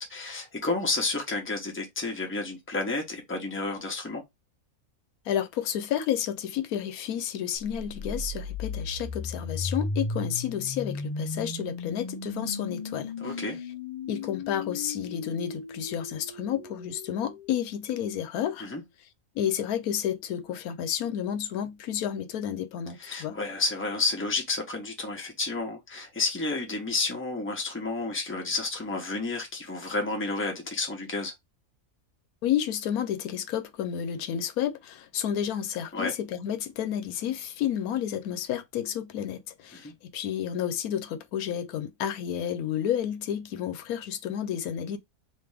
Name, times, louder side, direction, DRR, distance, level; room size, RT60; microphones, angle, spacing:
voice 1, 0.0-4.2 13.2-13.6 18.6-18.8 23.0-31.3 35.9-36.1 39.7-39.9, left 3 dB, 10° left, 0.9 m, -31 dB
voice 2, 5.3-13.4 14.1-18.7 19.3-23.4 32.4-45.0, left 10 dB, 80° left, 1.1 m, -31 dB
sound 1, 7.7-17.6, left 3 dB, 50° left, 0.4 m, -36 dB
3.4 x 2.8 x 3.4 m
omnidirectional pair, 1.5 m